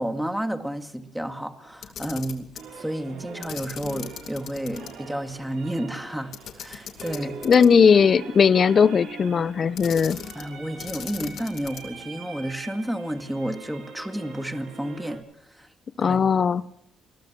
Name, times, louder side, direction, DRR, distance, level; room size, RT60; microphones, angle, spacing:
voice 1, 0.0-2.5 2.8-7.4 10.4-15.2 15.6-15.7 16.0-16.2, right 1 dB, 5° right, 7 dB, 2.0 m, -31 dB
Camera, 1.7-2.7 3.4-4.9 5.2-5.3 6.3-7.9 9.7-10.5 10.8-12.0, left 8 dB, 70° left, 2.5 m, -38 dB
sound 1, 2.6-15.2, right 5 dB, 80° right, 7.0 m, -43 dB
voice 2, 7.4-10.2 16.0-16.6, left 6 dB, 45° left, 17 dB, 0.8 m, -18 dB
28.0 x 21.0 x 6.2 m, 0.75 s
cardioid pair, 90°, 0 cm